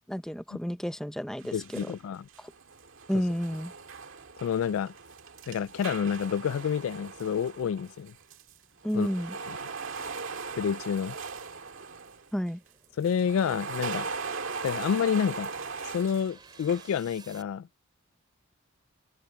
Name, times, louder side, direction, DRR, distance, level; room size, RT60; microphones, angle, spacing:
voice 1, 0.1-1.8 3.1-3.7 8.8-9.3 12.3-12.6, equal, 5° left, 0.7 m, -31 dB
sound 1, 1.4-2.0 2.3-8.6 8.8-12.3 13.0-17.0, right 5 dB, 70° right, 1.9 m, -39 dB
voice 2, 1.5-2.3 3.1-3.2 4.4-4.9 5.5-8.1 8.9-9.1 9.5-9.6 10.5-11.2 13.0-14.1 14.6-15.5 15.8-17.7, left 7 dB, 80° left, 0.3 m, -29 dB
sound 2, 3.8-17.4, right 4 dB, 20° right, 3.8 m, -60 dB
open air
head